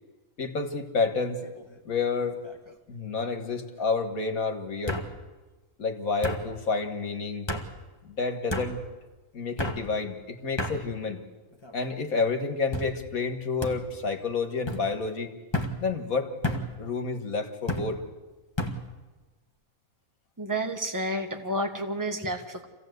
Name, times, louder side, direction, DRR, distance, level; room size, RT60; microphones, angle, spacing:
voice 1, 0.4-1.4 1.9-2.4 2.9-5.0 5.8-7.5 8.0-8.8 9.3-11.2 11.7-15.3 15.8-16.3 16.8-18.0, left 4 dB, 75° left, 6 dB, 2.1 m, -29 dB
sound 1, 1.4-1.8 2.2-2.7 3.8-3.9 4.9-5.1 6.2-6.4 7.5-7.7 8.5-8.7 9.6-9.8 10.6-10.8 11.5-11.9 12.7-12.9 13.6-13.8 14.7-14.8 15.5-15.7 16.4-16.7 17.7-17.9 18.6-18.8, left 1 dB, 20° left, 1.6 m, -31 dB
voice 2, 20.4-22.7, right 1 dB, 15° right, 5 dB, 1.5 m, -30 dB
25.5 x 16.5 x 8.1 m, 1.2 s
omnidirectional pair, 1.5 m